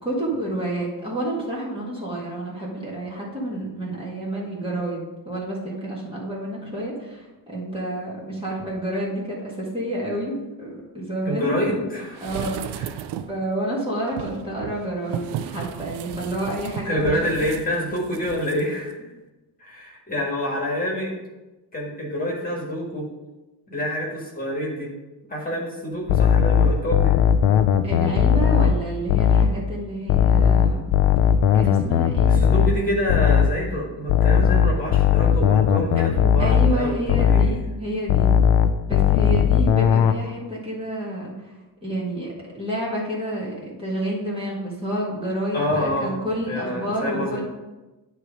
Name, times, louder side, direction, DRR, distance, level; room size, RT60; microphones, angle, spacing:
voice 1, 0.0-11.9 12.2-12.8 13.3-17.3 27.8-30.9 31.5-32.7 36.4-38.3 38.9-47.4, right 1 dB, 15° right, -5 dB, 1.7 m, -29 dB
voice 2, 11.2-12.2 12.8-12.9 16.8-18.9 19.6-21.1 21.7-23.0 23.7-24.9 25.3-27.1 32.3-37.6 45.5-46.1 46.5-47.4, equal, 20° left, -2 dB, 1.8 m, -27 dB
sound 1, 12.2-13.4 14.1-18.6 18.9-19.0, right 10 dB, 80° right, 0.6 m, -34 dB
sound 2, 26.1-29.6 30.1-33.6 34.1-37.6 38.1-40.1, left 8 dB, 85° left, 0.6 m, -18 dB
9.6 x 3.3 x 5.1 m, 1.1 s
cardioid pair, 140°, 40 cm